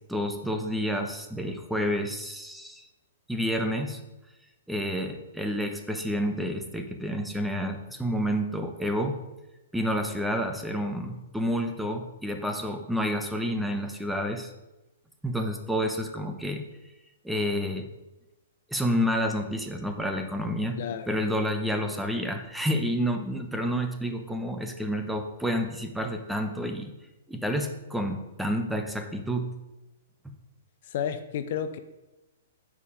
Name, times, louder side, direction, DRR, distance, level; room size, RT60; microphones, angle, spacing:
voice 1, 0.1-2.9 3.3-4.0 4.7-9.2 9.7-14.5 15.2-16.6 17.2-17.9 18.7-26.9 27.3-29.5 30.2-30.3, equal, ahead, 5 dB, 0.8 m, -29 dB
voice 2, 20.8-21.2 30.8-31.8, left 8 dB, 55° left, 10 dB, 0.6 m, -32 dB
8.4 x 5.0 x 4.9 m, 1.0 s
hypercardioid pair, 130°, 0 cm